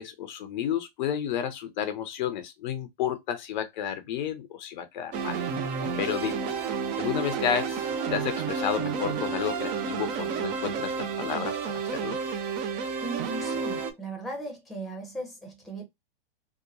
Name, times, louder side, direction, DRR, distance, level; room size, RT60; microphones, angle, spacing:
voice 1, 0.0-5.4 6.0-6.3 7.0-11.6 11.9-12.2, left 9 dB, 50° left, 0.5 m, -31 dB
sound 1, 5.1-13.9, right 5 dB, 30° right, 0.5 m, -31 dB
voice 2, 5.8-6.1 13.0-15.8, right 2 dB, ahead, 0.8 m, -37 dB
2.8 x 2.1 x 2.4 m
hypercardioid pair, 120°, 30 cm